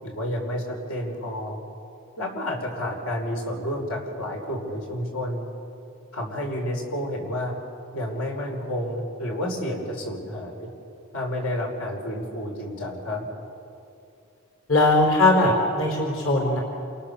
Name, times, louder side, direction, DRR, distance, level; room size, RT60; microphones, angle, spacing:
voice 1, 0.0-1.6 2.2-5.5 6.1-7.6 7.9-10.7 11.1-13.3, left 1 dB, 80° left, 1 dB, 5.5 m, -30 dB
voice 2, 14.7-16.6, left 2 dB, 60° left, 0 dB, 4.3 m, -20 dB
29.0 x 28.0 x 7.2 m, 2.6 s
head